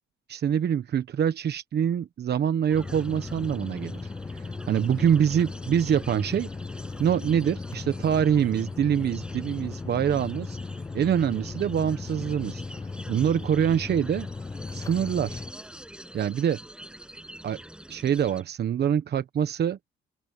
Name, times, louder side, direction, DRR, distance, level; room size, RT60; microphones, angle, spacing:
voice 1, 0.3-4.0 4.3-6.5 7.0-10.6 10.9-12.6 13.1-14.3 14.7-15.4 16.1-16.6 17.4-17.6 17.9-19.8, right 8 dB, 55° right, 1.1 m, -25 dB
sound 1, 2.7-15.5, left 4 dB, 15° left, 0.3 m, -37 dB
sound 2, 2.7-18.4, right 1 dB, 5° right, 6.7 m, -47 dB
open air
cardioid pair, 90°, 20 cm